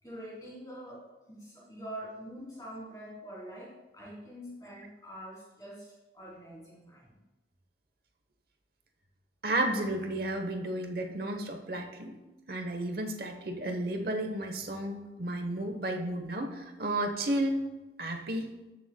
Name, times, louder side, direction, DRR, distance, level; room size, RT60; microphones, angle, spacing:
voice 1, 0.0-7.2, right 1 dB, 20° left, -6 dB, 3.0 m, -45 dB
voice 2, 9.4-12.2 12.5-17.6 18.0-18.5, right 1 dB, 55° right, 5 dB, 1.0 m, -32 dB
13.5 x 7.0 x 2.2 m, 1.1 s
head